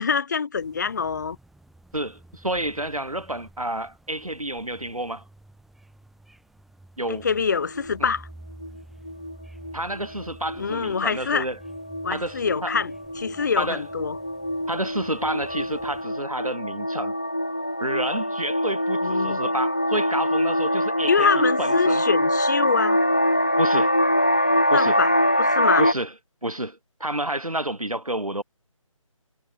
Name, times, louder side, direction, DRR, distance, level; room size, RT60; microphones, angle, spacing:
voice 1, 0.0-1.4 7.1-8.3 10.6-11.5 12.0-12.9 13.2-14.2 19.0-19.4 21.1-23.0 24.7-25.1 25.4-25.8, left 5 dB, 30° left, 1.2 m, -25 dB
sound 1, 0.6-16.0, right 1 dB, ahead, 2.3 m, -50 dB
voice 2, 1.9-5.2 7.0-7.3 8.0-8.1 9.7-11.6 12.1-12.7 13.6-13.8 14.7-17.2 17.8-21.3 21.6-22.0 23.6-24.0 24.7-25.0 25.8-26.1 26.4-28.4, right 1 dB, 85° right, 3.7 m, -29 dB
sound 2, 7.6-8.1 8.6-8.8 9.1-9.3 9.6-25.9, equal, 15° left, 0.4 m, -24 dB
figure-of-eight pair, 155°, 18 cm